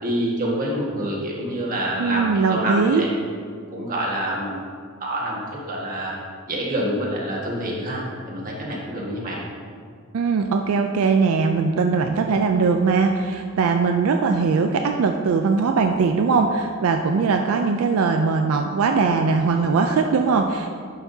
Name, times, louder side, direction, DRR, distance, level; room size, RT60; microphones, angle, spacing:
voice 1, 0.0-3.1 3.7-4.7 5.0-5.4 5.7-6.2 6.5-9.4, right 1 dB, 40° right, -4 dB, 1.6 m, -27 dB
voice 2, 2.0-3.0 10.1-20.7, right 4 dB, 80° right, 4 dB, 0.4 m, -20 dB
10.5 x 5.8 x 2.7 m, 2.1 s
head